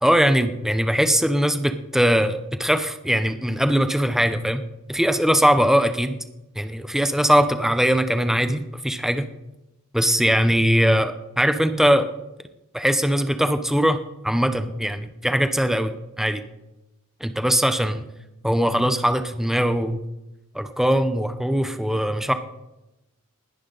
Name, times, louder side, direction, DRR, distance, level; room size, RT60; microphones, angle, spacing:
voice 1, 0.0-4.6 4.9-6.2 6.6-9.2 9.9-12.1 12.7-14.0 14.2-16.4 17.2-18.0 18.4-20.0 20.5-22.3, equal, ahead, 9 dB, 0.7 m, -21 dB
20.0 x 10.5 x 3.9 m, 0.95 s
head